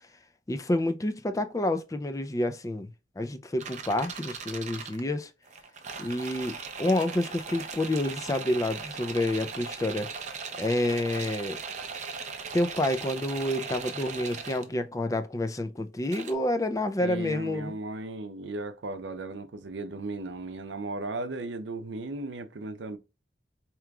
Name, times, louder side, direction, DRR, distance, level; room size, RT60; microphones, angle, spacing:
voice 1, 0.5-2.9 3.2-5.3 6.0-10.3 10.6-11.6 12.5-17.7, left 1 dB, 20° left, 0.4 m, -29 dB
sound 1, 3.6-5.0 5.4-14.7 16.0-16.3, right 5 dB, 40° right, 0.5 m, -39 dB
voice 2, 17.0-23.0, right 2 dB, 80° right, 0.6 m, -36 dB
4.7 x 3.0 x 2.3 m
head